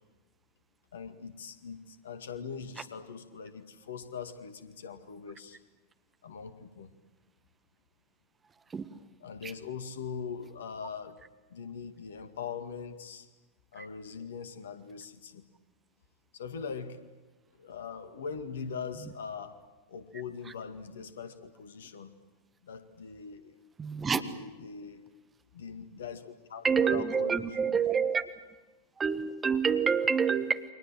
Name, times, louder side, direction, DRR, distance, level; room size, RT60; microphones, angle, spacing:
voice 1, 0.9-5.6 6.2-6.9 9.2-11.2 11.5-13.3 13.7-15.4 16.3-17.1 17.6-19.5 19.9-22.1 22.6-23.6 24.0-25.1 25.5-27.4, left 6 dB, 65° left, 10 dB, 2.1 m, -41 dB
voice 2, 23.8-24.2 26.6-28.3 29.0-30.6, right 6 dB, 15° right, 10 dB, 1.6 m, -27 dB
29.5 x 24.5 x 7.7 m, 1.2 s
figure-of-eight pair, 90°, 0 cm